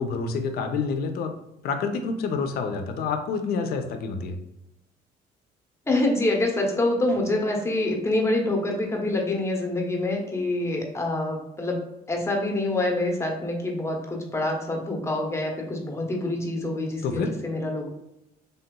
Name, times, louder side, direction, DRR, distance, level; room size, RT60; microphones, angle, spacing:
voice 1, 0.0-1.3 1.6-4.4 17.0-17.3, left 5 dB, 65° left, 6 dB, 0.5 m, -28 dB
voice 2, 5.9-17.9, left 2 dB, 15° left, 1 dB, 0.7 m, -26 dB
3.4 x 2.8 x 2.2 m, 0.88 s
cardioid pair, 110°, 17 cm